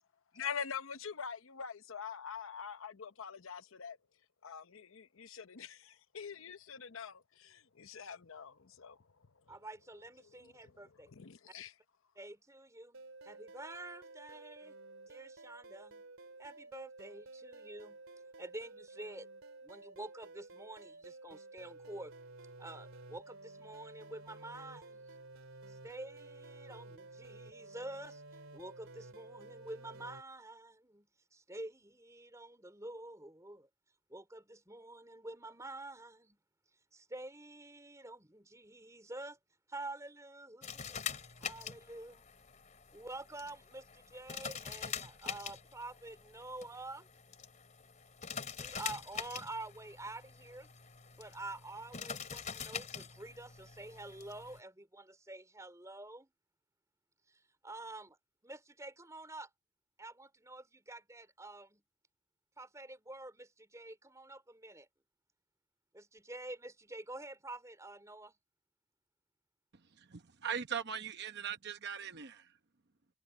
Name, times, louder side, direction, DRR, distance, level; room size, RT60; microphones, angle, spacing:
voice 1, 0.3-4.0 4.4-9.3 10.6-10.7 11.1-11.7, left 7 dB, 70° left, 0.8 m, -44 dB
voice 2, 9.5-11.1 12.2-14.8 15.1-16.0 16.4-18.0 18.4-19.3 19.6-22.1 22.6-25.2 25.7-28.2 28.5-33.7 34.1-36.4 36.9-39.4 39.7-41.0 41.4-42.3 42.9-47.1 48.6-50.7 51.2-56.3 57.3-58.2 58.4-59.5 60.0-61.8 62.6-64.9 65.9-68.3, right 2 dB, 15° right, 4.4 m, -48 dB
sound 1, 12.9-30.2, right 2 dB, 70° right, 3.0 m, -53 dB
sound 2, 40.6-54.6, left 7 dB, 35° left, 2.9 m, -45 dB
voice 3, 70.0-72.5, right 7 dB, 50° right, 0.9 m, -40 dB
head